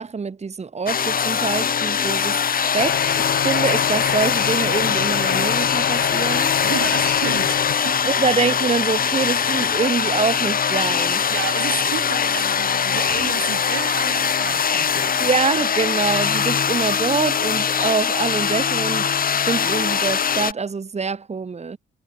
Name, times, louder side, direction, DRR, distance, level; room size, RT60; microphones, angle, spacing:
voice 1, 0.0-2.4 2.7-3.2 3.4-6.5 8.0-11.2 15.2-19.1 19.5-21.8, right 5 dB, 35° right, 4.1 m, -24 dB
sound 1, 0.9-20.5, left 7 dB, 45° left, 2.5 m, -22 dB
sound 2, 2.8-7.7, left 10 dB, 65° left, 3.4 m, -27 dB
voice 2, 6.6-8.1 11.3-15.2, right 15 dB, 90° right, 4.9 m, -31 dB
cardioid pair, 90°, 20 cm